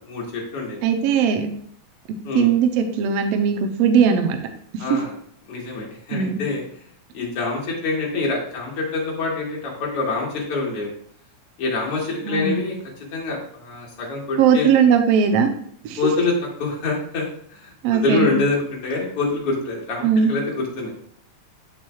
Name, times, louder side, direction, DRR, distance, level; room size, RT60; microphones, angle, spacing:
voice 1, 0.0-0.8 2.2-2.5 4.8-5.2 5.5-6.6 7.1-10.9 11.6-12.8 13.1-14.7 16.0-20.9, left 3 dB, 55° left, -2 dB, 2.4 m, -26 dB
voice 2, 0.8-1.5 2.3-4.4 6.1-6.4 12.2-12.6 14.4-15.5 15.8-16.0 17.8-18.3 20.0-20.3, right 7 dB, 75° right, 5 dB, 1.6 m, -18 dB
7.5 x 7.3 x 2.3 m, 0.63 s
omnidirectional pair, 3.5 m